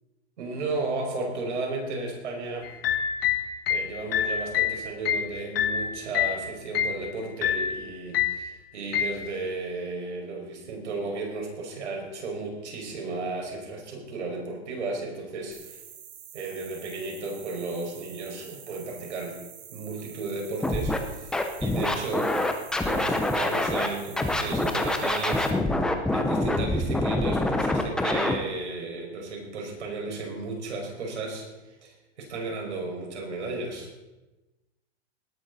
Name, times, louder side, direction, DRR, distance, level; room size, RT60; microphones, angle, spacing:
voice 1, 0.4-2.7 3.7-15.8 16.3-19.4 19.7-22.3 22.8-25.5 26.1-31.5 31.8-33.9, right 3 dB, 80° right, 1 dB, 5.7 m, -34 dB
sound 1, 2.6-6.4 6.7-7.0 7.4-7.8 8.1-8.5 8.9-9.2, left 9 dB, 55° left, 1.5 m, -26 dB
sound 2, 15.5-25.5, right 9 dB, 35° right, 2.5 m, -47 dB
Scratching (performance technique), 20.6-21.0 21.3-23.9 24.2-28.3, left 1 dB, ahead, 0.6 m, -25 dB
19.0 x 12.5 x 4.1 m, 1.1 s
hypercardioid pair, 150°, 34 cm